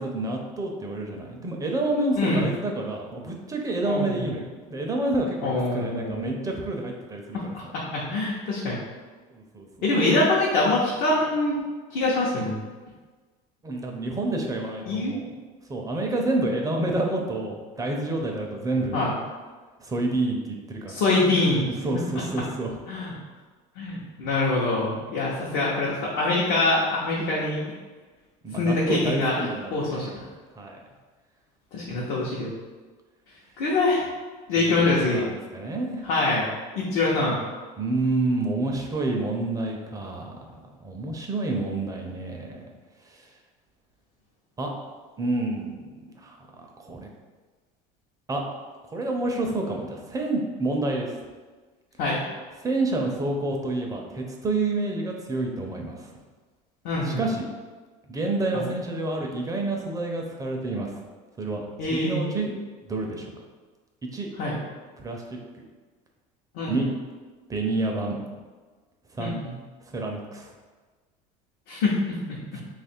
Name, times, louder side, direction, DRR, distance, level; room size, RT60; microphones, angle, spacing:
voice 1, 0.0-4.4 4.7-7.5 9.3-9.7 13.6-15.3 15.7-19.0 19.8-21.0 21.8-22.8 28.4-30.1 30.6-30.8 34.6-36.0 37.8-42.6 43.2-43.3 44.6-44.7 45.2-46.4 46.8-47.1 48.3-48.4 48.9-51.2 52.6-56.1 57.0-57.5 58.1-61.0 61.4-61.6 61.9-62.5 62.9-63.3 64.1-64.3 65.0-65.2 66.7-66.9 67.5-68.2 69.1-69.4 69.9-70.5 72.5-72.6, right 2 dB, 20° right, 1 dB, 0.5 m, -28 dB
voice 2, 2.2-2.5 3.8-4.3 5.4-6.4 7.3-8.8 9.8-11.6 11.9-12.6 14.9-15.1 18.9-19.1 20.9-21.7 22.9-23.1 23.8-27.6 28.6-30.2 31.7-32.5 33.6-34.0 34.5-35.2 36.0-36.4 36.8-37.4 52.0-52.2 56.8-57.2 58.5-58.7 61.8-62.2 64.4-64.6 66.5-66.9 69.2-69.5 71.7-72.4, left 2 dB, 70° left, -5 dB, 0.8 m, -24 dB
2.9 x 2.4 x 4.3 m, 1.4 s
supercardioid pair, 120°, 18 cm